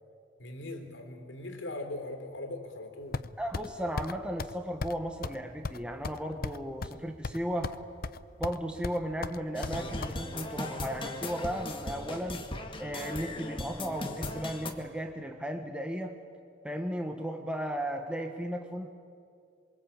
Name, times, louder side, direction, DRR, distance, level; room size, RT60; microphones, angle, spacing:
voice 1, 0.4-3.2, left 2 dB, 90° left, 5 dB, 3.5 m, -40 dB
sound 1, 3.1-3.7 4.0-4.1 4.4-4.5 4.8-5.0 5.2-5.4 5.6-7.0 7.2-7.8 8.0-8.6 8.8-10.1, left 3 dB, 50° left, 0.7 m, -35 dB
voice 2, 3.4-7.8 8.4-12.5 12.8-16.2 16.6-18.9, equal, 5° right, 4 dB, 1.3 m, -35 dB
sound 2, 9.5-14.7, left 2 dB, 30° left, 2.0 m, -38 dB
27.5 x 23.5 x 8.8 m, 2.4 s
head